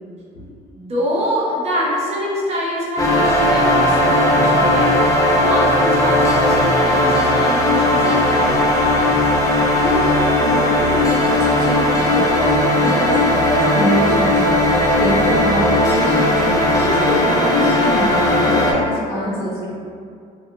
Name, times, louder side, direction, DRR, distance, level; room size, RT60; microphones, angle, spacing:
voice 1, 0.8-8.8, equal, 40° right, -6 dB, 0.7 m, -25 dB
sound 1, 3.0-18.7, left 1 dB, 20° left, 0.5 m, -16 dB
voice 2, 9.4-16.4 16.7-19.7, equal, 80° left, -8 dB, 1.1 m, -24 dB
2.4 x 2.4 x 2.7 m, 2.4 s
cardioid pair, 110°, 17 cm